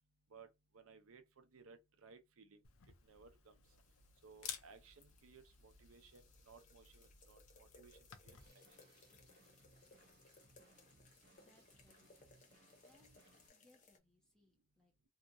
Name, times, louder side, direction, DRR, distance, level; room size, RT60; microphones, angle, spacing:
voice 1, 0.7-2.6 3.0-3.5 4.2-8.0 8.2-8.4, right 5 dB, 85° right, 0.5 m, -61 dB
Camera, 2.6-8.5, left 8 dB, 85° left, 0.6 m, -55 dB
sound 1, 3.6-14.0, left 3 dB, 35° left, 0.6 m, -67 dB
Drum kit, 8.3-13.5, right 2 dB, 50° right, 0.8 m, -68 dB
voice 2, 11.4-13.2 13.5-14.9, left 1 dB, 5° left, 0.9 m, -73 dB
2.8 x 2.4 x 2.6 m
head